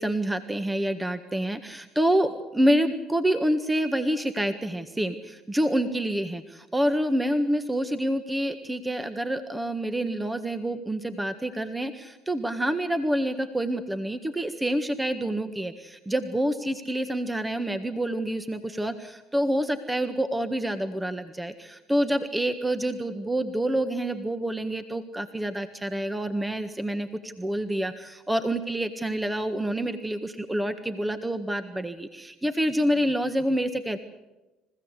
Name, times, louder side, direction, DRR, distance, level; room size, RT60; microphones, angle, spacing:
voice 1, 0.0-34.0, right 1 dB, 10° right, 9 dB, 1.6 m, -27 dB
28.0 x 16.0 x 8.3 m, 1.1 s
supercardioid pair, 80°, 0 cm